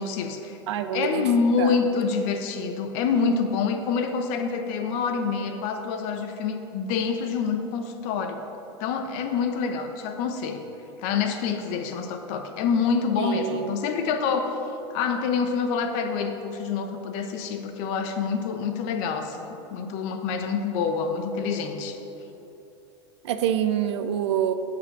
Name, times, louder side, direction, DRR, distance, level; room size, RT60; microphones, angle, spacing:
voice 1, 0.0-0.6 0.9-8.4 8.8-10.7 11.0-14.5 14.9-22.0, left 5 dB, 55° left, 6 dB, 1.0 m, -26 dB
voice 2, 0.7-1.3 1.6-1.7 13.2-13.8 23.2-24.5, right 10 dB, 75° right, 10 dB, 0.6 m, -26 dB
8.3 x 5.7 x 6.6 m, 2.9 s
hypercardioid pair, 115°, 15 cm